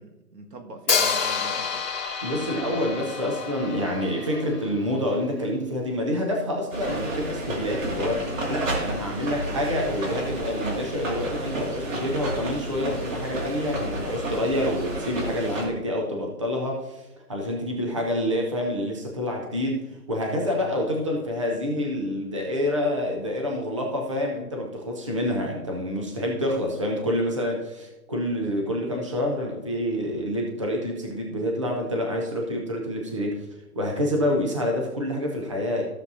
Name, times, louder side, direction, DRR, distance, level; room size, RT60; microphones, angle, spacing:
voice 1, 0.0-1.9 2.3-3.0 9.2-9.7, right 2 dB, 85° right, 3 dB, 1.8 m, -42 dB
Hi-hat, 0.9-4.8, left 6 dB, 60° left, 2.3 m, -28 dB
voice 2, 2.2-33.5 33.7-35.8, left 1 dB, 20° right, 0 dB, 0.6 m, -27 dB
sound 1, 6.7-15.7, right 1 dB, 55° right, 2.2 m, -31 dB
14.5 x 7.0 x 2.7 m, 1.0 s
hypercardioid pair, 170°, 47 cm